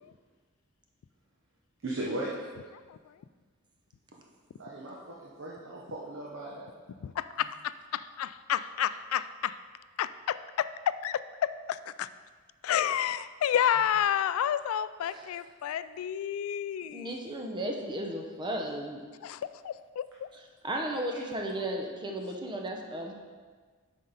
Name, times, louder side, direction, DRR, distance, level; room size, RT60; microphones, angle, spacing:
voice 1, 1.8-2.3 4.6-6.6, right 1 dB, 65° right, -4 dB, 0.9 m, -37 dB
voice 2, 7.0-7.6 7.9-9.6 10.0-12.1 12.6-17.2 19.2-20.0, left 9 dB, 80° left, 16 dB, 0.3 m, -30 dB
voice 3, 16.9-19.0 20.6-23.1, right 1 dB, 20° right, 1 dB, 0.8 m, -34 dB
7.3 x 5.2 x 4.0 m, 1.5 s
head